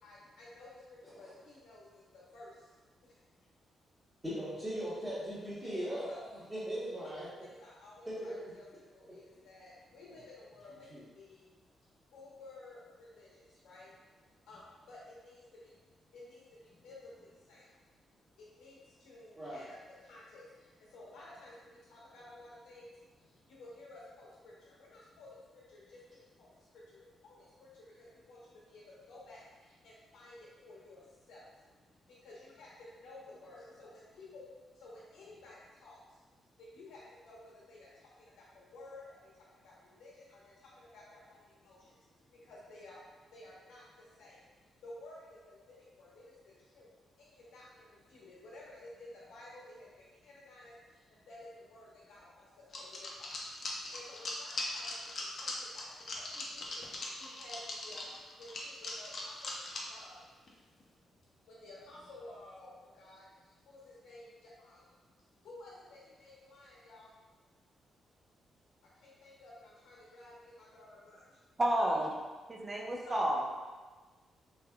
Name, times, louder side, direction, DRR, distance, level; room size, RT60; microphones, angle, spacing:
voice 1, 0.0-3.5 5.6-6.2 6.9-46.9 47.2-60.4 60.9-67.1 68.9-71.9 73.0-73.5, left 2 dB, 90° left, -6 dB, 1.1 m, -54 dB
voice 2, 4.2-6.1 6.3-7.3 8.0-8.5 10.9-11.0 19.3-19.6, equal, 15° right, -13 dB, 1.2 m, -39 dB
sound 1, 52.7-60.0 60.5-60.6 60.8-60.9, left 2 dB, 55° left, 0.6 m, -40 dB
voice 3, 71.6-72.1 72.5-73.4, right 1 dB, 30° right, -1 dB, 0.6 m, -30 dB
3.4 x 3.3 x 2.3 m, 1.3 s
cardioid pair, 75°, 0 cm